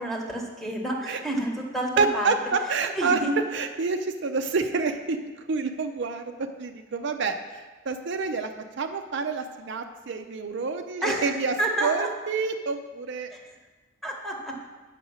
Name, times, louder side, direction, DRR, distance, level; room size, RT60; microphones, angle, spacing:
voice 1, 0.0-2.3 3.0-3.3 11.0-12.1 13.3-13.4 14.0-14.6, right 1 dB, ahead, 0 dB, 1.0 m, -29 dB
voice 2, 2.0-3.2 3.5-5.2 5.5-8.5 8.8-11.5 11.8-13.3, right 4 dB, 65° right, 6 dB, 0.5 m, -28 dB
8.2 x 5.1 x 6.2 m, 1.3 s
head